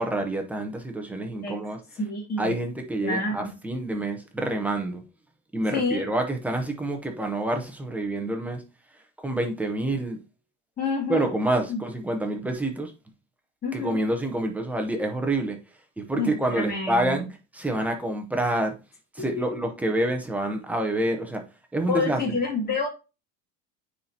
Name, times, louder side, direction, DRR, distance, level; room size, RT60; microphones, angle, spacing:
voice 1, 0.0-1.8 2.4-5.0 5.5-8.6 9.2-10.2 11.1-12.9 13.7-15.6 16.0-17.3 17.5-18.7 19.1-21.4 21.7-22.2, right 1 dB, 5° right, 0.7 m, -27 dB
voice 2, 2.0-2.5 3.0-3.5 5.7-6.0 10.8-11.3 11.7-11.8 13.6-14.0 16.2-17.3 19.2-19.6 21.9-22.9, left 3 dB, 25° left, 2.6 m, -28 dB
9.1 x 4.2 x 2.8 m
cardioid pair, 170°, 37 cm